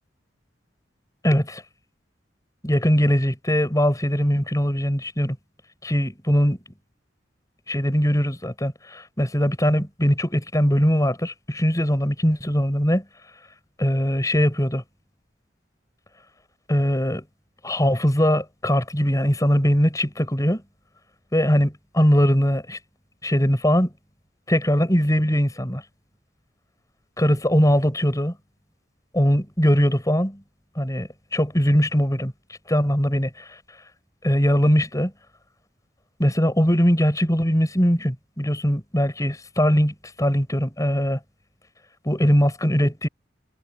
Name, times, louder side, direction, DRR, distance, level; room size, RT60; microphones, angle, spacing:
voice 1, 1.2-1.6 2.6-5.4 5.8-6.6 7.7-13.0 13.8-14.8 16.7-17.2 17.6-20.6 21.3-22.8 23.2-23.9 24.5-25.8 27.2-28.4 29.1-30.4 30.8-32.3 32.7-33.4 34.2-35.1 36.2-41.2 42.0-43.1, equal, 20° left, 5.9 m, -21 dB
head